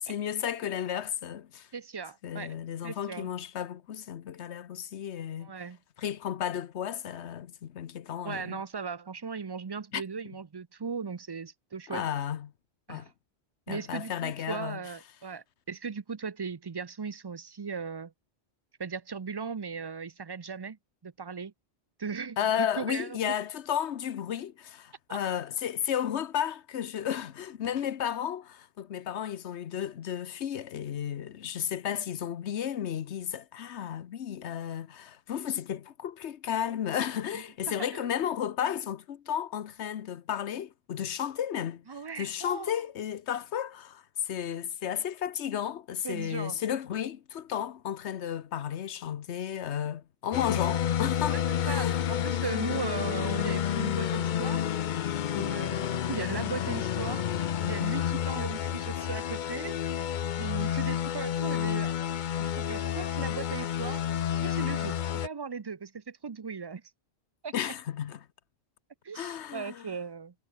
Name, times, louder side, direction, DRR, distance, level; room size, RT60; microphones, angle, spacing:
voice 1, 0.0-1.7 2.2-5.5 6.0-8.6 9.9-10.0 11.9-12.5 12.9-13.1 13.7-14.8 22.4-41.8 42.2-52.1 52.4-52.9 55.3-55.5 59.0-59.1 67.5-68.2 69.1-69.9, left 9 dB, 90° left, 1.2 m, -33 dB
voice 2, 1.7-2.6 2.8-3.3 5.4-5.8 8.2-12.0 12.9-13.1 13.7-18.1 18.8-20.8 21.0-21.5 22.0-23.3 25.1-25.2 37.3-38.1 41.9-42.8 46.0-46.6 51.3-51.4 51.7-54.7 55.4-57.3 57.6-59.8 60.4-61.9 62.4-64.0 64.3-66.8 67.4-67.5 69.0-70.3, right 5 dB, 30° right, 0.5 m, -38 dB
sound 1, 50.3-65.3, left 10 dB, 55° left, 0.6 m, -30 dB
omnidirectional pair, 1.1 m